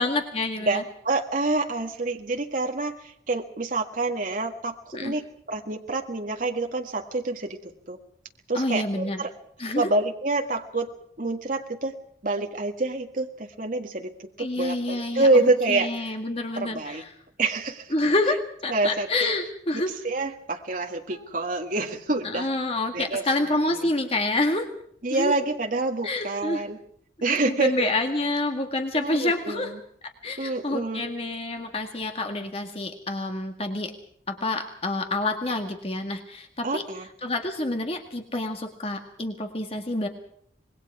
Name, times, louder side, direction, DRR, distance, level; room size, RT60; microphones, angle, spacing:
voice 1, 0.0-0.8 4.9-5.2 8.5-9.3 9.6-9.9 14.4-17.1 17.9-19.9 21.1-21.3 22.2-24.7 25.1-25.3 26.0-26.6 27.3-29.7 30.2-33.9 34.3-36.9 37.2-40.1, left 2 dB, 30° left, 4 dB, 1.9 m, -28 dB
voice 2, 0.7-4.7 5.0-5.2 5.5-8.0 8.5-9.3 9.8-10.9 11.2-11.9 12.2-14.1 14.4-16.1 16.5-17.0 17.4-17.9 18.7-19.3 20.0-22.5 22.9-23.2 25.0-26.8 27.2-27.9 28.9-29.7 30.4-31.1 36.6-37.1, right 2 dB, 45° right, 3 dB, 1.8 m, -27 dB
26.0 x 21.0 x 4.8 m, 0.66 s
head